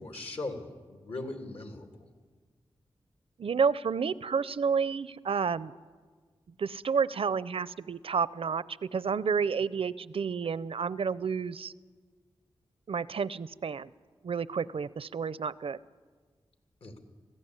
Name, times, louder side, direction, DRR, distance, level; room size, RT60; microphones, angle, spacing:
voice 1, 0.0-2.1 16.8-17.0, left 2 dB, 70° left, 4 dB, 2.9 m, -39 dB
voice 2, 3.4-5.7 6.6-11.7 12.9-13.9 14.2-15.8, right 6 dB, 65° right, 18 dB, 0.6 m, -30 dB
20.5 x 15.5 x 9.8 m, 1.5 s
cardioid pair, 65°, 10 cm